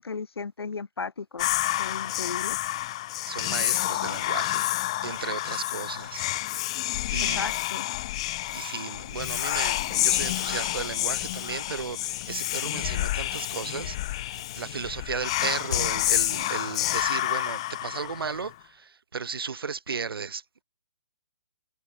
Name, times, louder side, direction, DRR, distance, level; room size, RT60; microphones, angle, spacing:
voice 1, 0.0-1.5 1.8-2.6 7.2-7.9, left 5 dB, 90° left, 4.8 m, -35 dB
Whispering, 1.4-18.5, left 16 dB, 15° left, 0.7 m, -29 dB
voice 2, 3.2-4.8 5.0-6.2 7.1-7.5 8.5-20.6, right 5 dB, 70° right, 2.3 m, -35 dB
Slam, 12.4-17.0, left 6 dB, 50° left, 6.3 m, -42 dB
hypercardioid pair, 180°, 13 cm